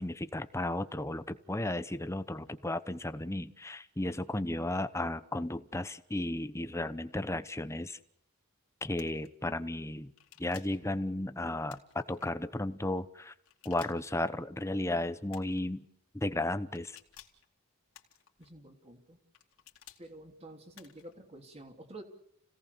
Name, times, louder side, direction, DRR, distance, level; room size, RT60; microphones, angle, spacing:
voice 1, 0.0-8.0 8.8-10.1 10.4-13.3 13.6-15.9 16.1-17.0, left 1 dB, 15° left, 12 dB, 0.9 m, -34 dB
sound 1, 9.0-9.3 10.2-10.8 11.7-12.3 13.4-14.2 15.3-15.7 16.7-17.4 17.9-18.5 19.3-20.0 20.7-21.1, left 11 dB, 70° left, 2.7 m, -56 dB
voice 2, 18.4-19.2 20.0-22.0, right 1 dB, 30° right, 4 dB, 3.2 m, -49 dB
29.5 x 17.5 x 7.0 m, 0.76 s
head